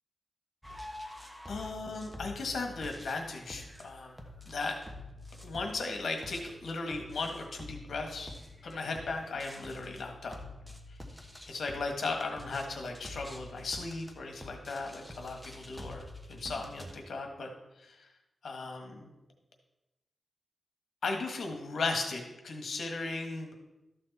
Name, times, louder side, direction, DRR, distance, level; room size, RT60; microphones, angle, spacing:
sound 1, 0.6-16.9, left 1 dB, ahead, 1.2 m, -47 dB
voice 1, 1.5-4.1 4.5-4.8 5.4-8.3 8.6-10.4 11.5-17.5 17.8-17.9 18.4-19.1 21.0-23.5, left 3 dB, 75° left, 3 dB, 1.6 m, -36 dB
13.0 x 6.6 x 4.2 m, 0.95 s
wide cardioid pair, 150°, 0 cm